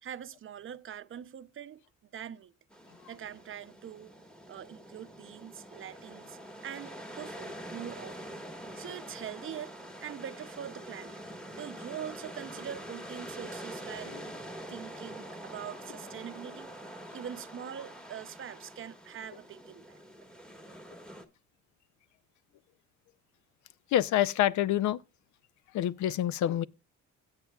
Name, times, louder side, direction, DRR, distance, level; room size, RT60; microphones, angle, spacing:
voice 1, 0.0-1.8 2.1-2.5 3.1-4.1 4.5-8.4 8.8-9.8 10.0-11.2 11.5-14.3 14.7-16.7 17.1-20.0, right 9 dB, 45° right, 0.6 m, -43 dB
sound 1, 2.7-21.3, equal, 5° left, 1.5 m, -45 dB
voice 2, 23.9-25.0 25.7-26.6, left 12 dB, 75° left, 0.6 m, -27 dB
16.5 x 8.2 x 2.3 m
cardioid pair, 90°, 30 cm